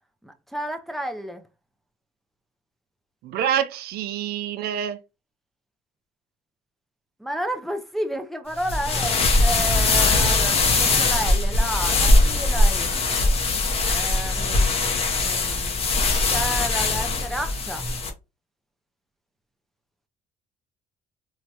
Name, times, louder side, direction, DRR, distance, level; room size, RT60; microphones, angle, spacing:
voice 1, 0.2-1.4 7.2-13.0 13.8-15.8 16.3-17.9, equal, ahead, 0.4 m, -32 dB
voice 2, 3.2-5.0, right 9 dB, 70° right, 0.4 m, -26 dB
sound 1, 8.6-18.1, left 2 dB, 35° left, 0.7 m, -21 dB
3.0 x 2.2 x 2.7 m
cardioid pair, 110°, 17 cm